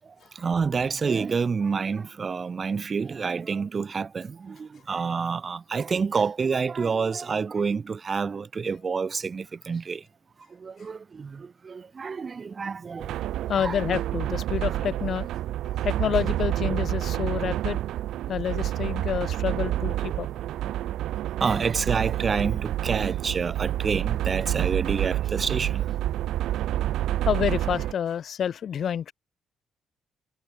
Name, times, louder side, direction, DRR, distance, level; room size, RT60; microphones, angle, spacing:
voice 1, 0.0-10.1 10.5-13.1 13.4-13.8 21.4-25.9, right 5 dB, 40° right, 0.8 m, -28 dB
sound 1, 13.0-27.9, right 13 dB, 80° right, 1.9 m, -28 dB
voice 2, 13.5-15.3 15.7-17.8 18.3-20.3 26.3-26.4 27.2-29.1, left 8 dB, 60° left, 0.8 m, -28 dB
cardioid pair, 90°, 0 cm